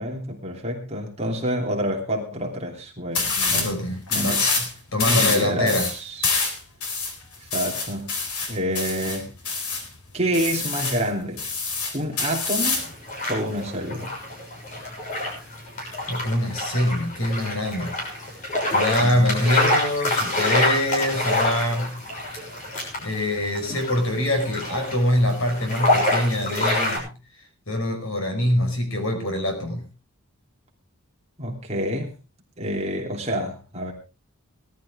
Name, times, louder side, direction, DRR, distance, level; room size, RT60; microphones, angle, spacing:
voice 1, 0.0-3.7 4.1-4.4 5.0-6.4 7.4-8.1 8.5-9.3 10.1-11.4 11.9-12.8 13.3-14.1 19.0-19.2 31.4-32.1 32.6-33.9, equal, 30° right, 1 dB, 3.1 m, -28 dB
sound 1, 3.1-3.7 4.1-4.7 5.0-9.9 10.3-11.0 11.4-12.9, left 4 dB, 80° left, 4.0 m, -25 dB
voice 2, 3.5-4.5 4.9-5.9 16.1-17.9 18.7-22.0 23.0-27.1 27.7-29.8, left 1 dB, 65° left, 4 dB, 5.3 m, -24 dB
sound 2, 12.8-27.0, left 1 dB, 35° left, 6.5 m, -27 dB
18.5 x 12.5 x 3.6 m, 0.32 s
head